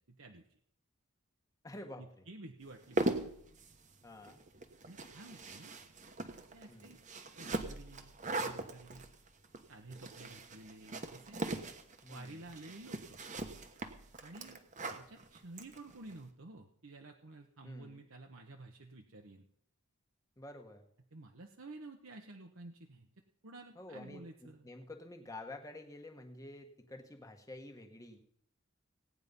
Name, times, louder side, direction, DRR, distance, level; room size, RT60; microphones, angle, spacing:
voice 1, 0.1-0.5 2.0-3.3 4.9-5.7 6.5-7.0 7.3-9.0 9.7-11.4 12.1-13.2 14.2-19.5 21.1-23.1 23.4-24.7, right 2 dB, 70° right, 2 dB, 1.1 m, -52 dB
voice 2, 1.6-2.0 4.0-4.4 6.7-7.0 12.0-12.3 17.6-18.1 20.4-20.8 23.7-28.2, left 1 dB, 15° left, 4 dB, 1.5 m, -49 dB
sound 1, 2.7-16.2, right 2 dB, 35° right, 1.2 m, -41 dB
17.5 x 9.5 x 5.5 m, 0.67 s
head